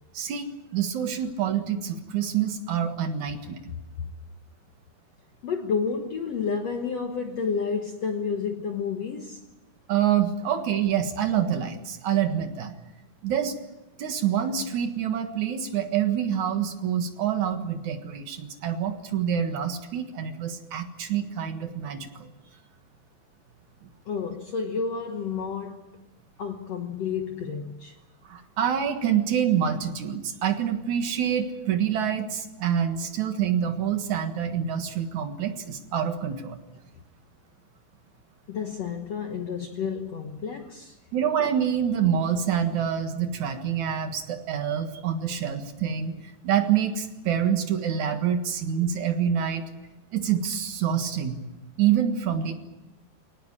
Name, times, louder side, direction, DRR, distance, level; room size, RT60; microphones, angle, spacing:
voice 1, 0.1-3.7 9.9-12.7 13.2-13.6 14.0-22.3 23.8-23.9 28.3-36.6 41.1-46.2 46.4-49.7 50.1-51.4 51.8-52.5, right 9 dB, 60° right, 2.7 m, -26 dB
voice 2, 5.4-9.4 24.1-25.9 26.4-28.0 38.5-41.0, left 5 dB, 60° left, 1.8 m, -30 dB
23.5 x 19.0 x 8.8 m
omnidirectional pair, 4.3 m